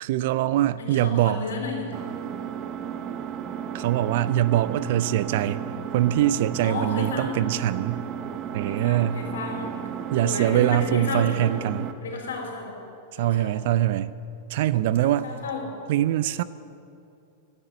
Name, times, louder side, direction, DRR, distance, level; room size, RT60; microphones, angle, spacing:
voice 1, 0.0-1.4 3.7-5.6 5.9-8.0 8.5-9.2 10.1-11.9 13.2-14.1 14.5-15.3 15.9-16.4, right 12 dB, 60° right, 17 dB, 0.4 m, -23 dB
voice 2, 0.8-1.9 6.6-7.4 8.7-9.8 10.2-11.4 12.0-12.8 13.2-13.6 15.0-15.7, left 4 dB, 75° left, 0 dB, 3.7 m, -33 dB
Engine, 1.9-11.9, right 8 dB, 40° right, 1.0 m, -34 dB
10.5 x 9.7 x 9.2 m, 2.6 s
hypercardioid pair, 100°, 0 cm